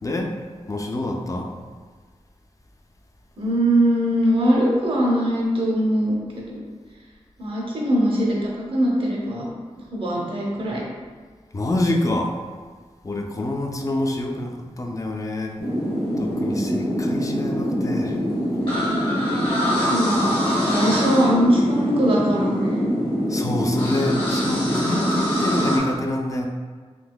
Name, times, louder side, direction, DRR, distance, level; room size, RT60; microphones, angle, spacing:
voice 1, 0.0-0.4 0.7-1.5 11.5-12.4 13.0-15.6 16.2-18.2 23.3-26.5, left 1 dB, 30° left, 2 dB, 0.4 m, -26 dB
voice 2, 3.4-6.6 7.4-9.4 9.9-10.8 19.9-22.9, equal, 50° right, -4 dB, 0.6 m, -21 dB
sound 1, 15.6-25.8, equal, 50° left, 1.0 m, -23 dB
3.8 x 2.7 x 2.3 m, 1.5 s
wide cardioid pair, 90°, 11 cm